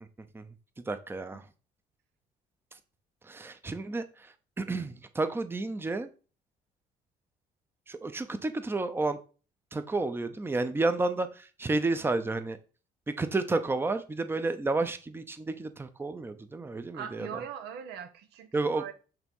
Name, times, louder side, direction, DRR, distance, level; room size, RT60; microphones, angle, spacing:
voice 1, 0.9-1.4 3.2-6.1 7.9-9.2 9.7-12.6 13.2-17.3 18.5-18.8, right 3 dB, 15° right, 0.7 m, -31 dB
voice 2, 11.8-12.2 16.9-18.9, right 8 dB, 85° right, 1.1 m, -41 dB
8.9 x 3.5 x 5.4 m
cardioid pair, 110°, 17 cm